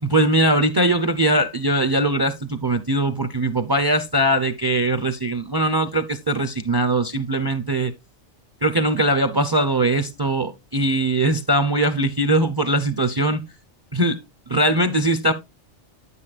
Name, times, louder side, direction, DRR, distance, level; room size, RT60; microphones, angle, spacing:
voice 1, 0.0-7.9 8.6-13.4 13.9-14.2 14.5-15.3, right 1 dB, 30° right, 0.5 m, -21 dB
9.4 x 8.3 x 2.4 m
omnidirectional pair, 1.2 m